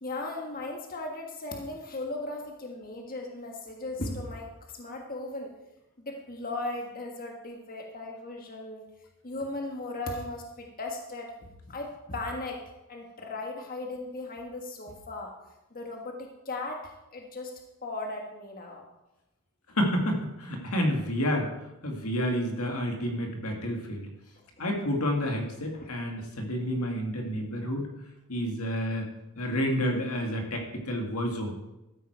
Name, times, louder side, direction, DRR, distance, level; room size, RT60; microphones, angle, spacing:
voice 1, 0.0-5.5 6.0-8.8 9.2-12.6 12.9-15.3 15.7-17.5 17.8-18.8 25.7-25.9, left 2 dB, 40° left, 1 dB, 1.5 m, -37 dB
voice 2, 19.8-21.5 21.8-24.1 24.6-27.9 28.3-29.1 29.4-31.5, equal, 85° left, 2 dB, 2.1 m, -29 dB
13.0 x 9.4 x 4.6 m, 0.95 s
head